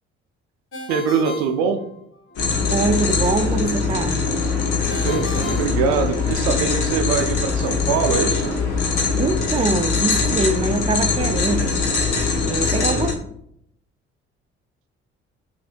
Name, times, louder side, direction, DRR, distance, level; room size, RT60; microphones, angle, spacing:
Ringtone, 0.7-2.4 4.9-6.6, left 2 dB, 40° left, 1.1 m, -34 dB
voice 1, 0.9-1.8 4.9-8.5, right 6 dB, 75° right, 7 dB, 0.5 m, -23 dB
sound 1, 2.4-13.1, left 4 dB, 65° left, 1.0 m, -22 dB
voice 2, 2.7-4.2 9.1-11.7 12.5-13.1, right 3 dB, 20° right, 6 dB, 0.4 m, -23 dB
5.4 x 2.6 x 2.5 m, 0.70 s
hypercardioid pair, 45°, 33 cm